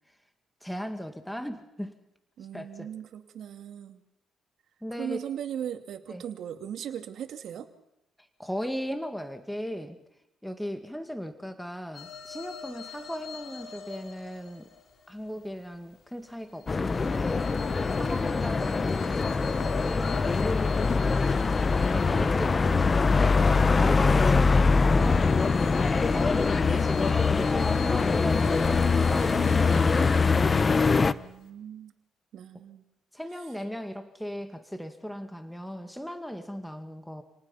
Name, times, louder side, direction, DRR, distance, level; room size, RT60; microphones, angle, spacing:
voice 1, 0.6-2.0 2.5-2.9 4.8-5.3 6.1-6.2 8.2-10.0 10.4-14.7 15.1-17.5 17.9-25.5 26.1-30.2 33.1-37.2, equal, ahead, 7 dB, 2.1 m, -38 dB
voice 2, 2.4-4.0 5.0-7.7 26.7-27.0 30.9-31.9 32.3-32.8, right 9 dB, 70° right, 7 dB, 2.4 m, -38 dB
sound 1, 11.9-15.7 16.2-23.7 24.2-31.5, left 7 dB, 60° left, 4.1 m, -45 dB
sound 2, 16.7-31.1, left 4 dB, 30° left, 0.9 m, -23 dB
29.0 x 19.0 x 5.8 m, 0.84 s
cardioid pair, 90°, 0 cm